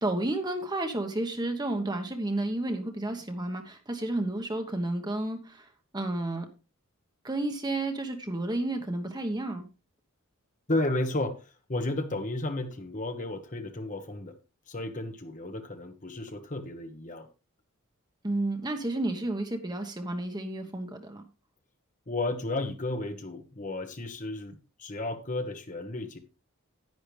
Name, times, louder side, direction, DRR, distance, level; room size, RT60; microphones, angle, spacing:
voice 1, 0.0-5.7 5.9-6.5 7.2-9.7 18.2-21.2, right 2 dB, 20° right, 1.2 m, -31 dB
voice 2, 10.7-14.3 14.7-17.3 22.1-26.2, left 2 dB, 35° left, 1.2 m, -33 dB
10.5 x 9.9 x 3.3 m
head